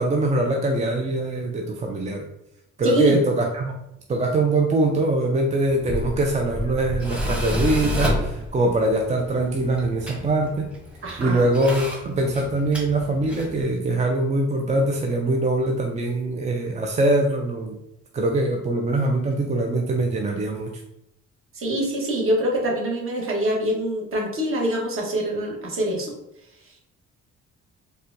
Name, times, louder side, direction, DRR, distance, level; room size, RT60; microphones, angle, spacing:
voice 1, 0.0-2.2 2.8-3.8 4.1-10.7 11.2-17.7 18.1-20.7, right 2 dB, 25° right, 2 dB, 0.4 m, -23 dB
voice 2, 2.8-3.2 11.0-11.5 21.5-26.1, right 1 dB, 45° right, -1 dB, 1.1 m, -24 dB
Tools, 5.7-13.6, left 1 dB, 5° right, 0.9 m, -30 dB
4.1 x 2.2 x 2.6 m, 0.81 s
cardioid pair, 90°, 30 cm